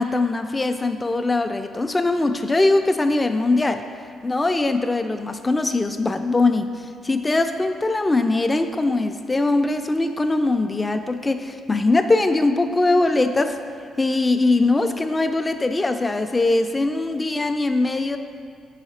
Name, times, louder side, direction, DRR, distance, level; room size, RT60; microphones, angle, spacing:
voice 1, 0.0-3.8 4.2-6.7 7.0-13.5 14.0-18.2, left 2 dB, 20° left, 7 dB, 0.3 m, -21 dB
4.9 x 4.8 x 4.2 m, 2.3 s
cardioid pair, 90°, 0 cm